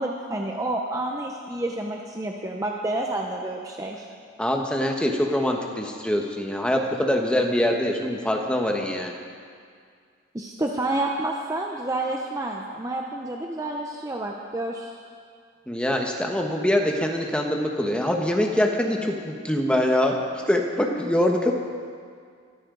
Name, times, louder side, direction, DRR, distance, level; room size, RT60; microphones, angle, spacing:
voice 1, 0.0-4.0 10.3-14.9, right 2 dB, 15° right, 0 dB, 0.8 m, -29 dB
voice 2, 4.4-9.1 15.7-20.1 20.5-21.5, left 1 dB, 5° left, 1 dB, 1.3 m, -24 dB
23.5 x 14.0 x 3.9 m, 2.1 s
head